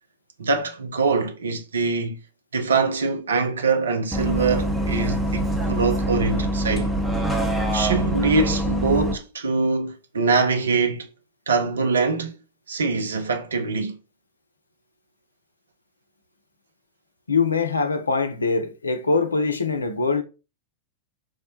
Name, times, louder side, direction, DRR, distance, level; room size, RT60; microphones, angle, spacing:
voice 1, 0.4-2.2 2.5-6.9 7.7-11.1 11.5-12.4 12.7-14.0, right 4 dB, 70° right, 0.5 m, -23 dB
Bus, 4.1-9.1, right 1 dB, 5° right, 0.7 m, -24 dB
voice 2, 17.3-20.2, left 4 dB, 75° left, 0.4 m, -23 dB
4.6 x 2.1 x 2.8 m
figure-of-eight pair, 90°, 0 cm